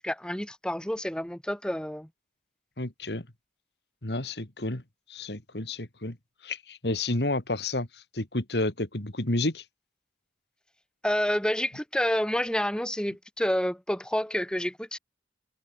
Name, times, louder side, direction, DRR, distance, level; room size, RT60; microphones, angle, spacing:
voice 1, 0.0-2.1 11.0-15.0, equal, 5° left, 1.7 m, -29 dB
voice 2, 2.8-3.3 4.0-4.8 5.1-6.2 6.4-9.6, left 2 dB, 65° left, 2.7 m, -30 dB
head